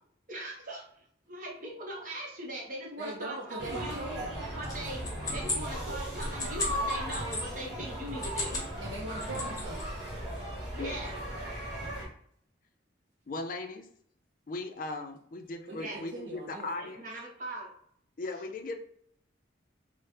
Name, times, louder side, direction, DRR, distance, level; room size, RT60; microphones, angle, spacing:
voice 1, 0.3-0.8 1.3-4.1 4.5-8.6 10.7-11.1 15.8-16.0 16.8-17.7, right 1 dB, 45° right, -2 dB, 0.9 m, -40 dB
voice 2, 3.0-4.4 8.8-9.8 15.7-16.9, right 2 dB, 70° right, -3 dB, 0.5 m, -40 dB
sound 1, 3.6-12.0, equal, 5° right, 1.3 m, -37 dB
sound 2, 4.6-7.4 8.1-8.7 9.0-9.8, left 2 dB, 20° left, 0.8 m, -36 dB
voice 3, 13.3-13.9 14.5-17.0 18.2-18.8, left 2 dB, 45° left, 5 dB, 0.4 m, -38 dB
4.2 x 2.0 x 3.2 m, 0.66 s
head